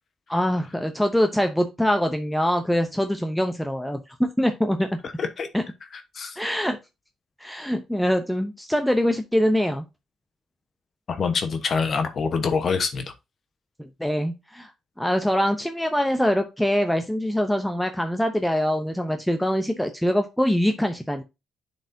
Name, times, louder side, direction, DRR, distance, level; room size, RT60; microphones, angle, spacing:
voice 1, 0.3-4.0 4.4-4.9 5.5-5.6 6.4-6.8 7.4-9.8 13.8-14.7 15.0-21.2, equal, 5° left, 0.7 m, -23 dB
voice 2, 5.9-6.4 11.1-13.0, left 5 dB, 50° left, 1.1 m, -25 dB
9.9 x 4.3 x 2.7 m
cardioid pair, 90°, 0 cm